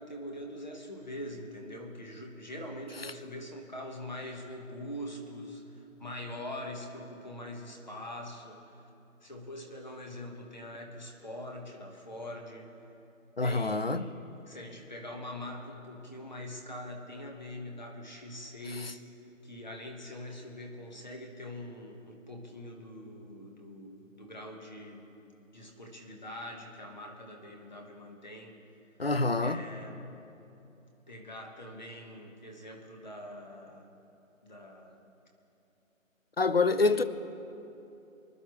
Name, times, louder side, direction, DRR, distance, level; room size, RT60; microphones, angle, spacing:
voice 1, 0.0-8.8 9.2-12.7 13.4-14.2 14.5-19.1 19.4-25.1 25.5-28.6 29.4-30.2 31.1-33.9 34.4-35.0 36.7-37.0, left 1 dB, 35° left, 1.5 m, -43 dB
voice 2, 13.4-14.1 18.8-18.9 29.0-29.6 36.4-37.0, left 3 dB, 50° left, 0.4 m, -26 dB
25.0 x 11.0 x 3.2 m
figure-of-eight pair, 180°, 41 cm